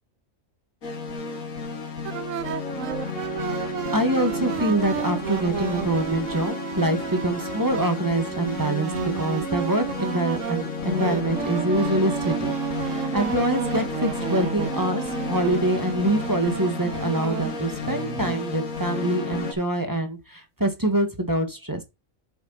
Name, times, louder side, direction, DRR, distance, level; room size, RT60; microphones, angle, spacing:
sound 1, 0.8-19.5, left 4 dB, 90° left, 2.2 m, -32 dB
sound 2, 2.0-18.4, right 10 dB, 70° right, 1.1 m, -32 dB
voice 1, 3.4-12.5 12.8-21.8, right 1 dB, 15° right, 1.9 m, -25 dB
8.2 x 7.2 x 4.2 m
omnidirectional pair, 1.4 m